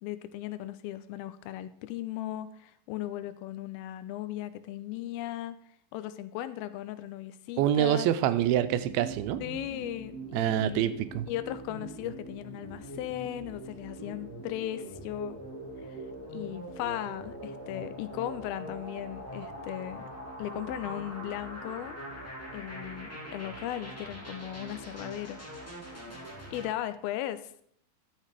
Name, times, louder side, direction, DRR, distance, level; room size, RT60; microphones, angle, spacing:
voice 1, 0.0-5.6 5.9-8.1 9.4-11.0 11.3-15.4 15.8-16.0 16.3-20.0 20.4-22.0 22.5-25.4 26.1-26.2 26.5-27.6, left 13 dB, 85° left, 13 dB, 2.5 m, -37 dB
voice 2, 7.6-9.4 10.3-11.3, right 12 dB, 80° right, 12 dB, 2.3 m, -26 dB
sound 1, 8.4-26.7, right 1 dB, 20° left, 0.4 m, -43 dB
11.5 x 6.6 x 4.8 m, 0.64 s
omnidirectional pair, 4.4 m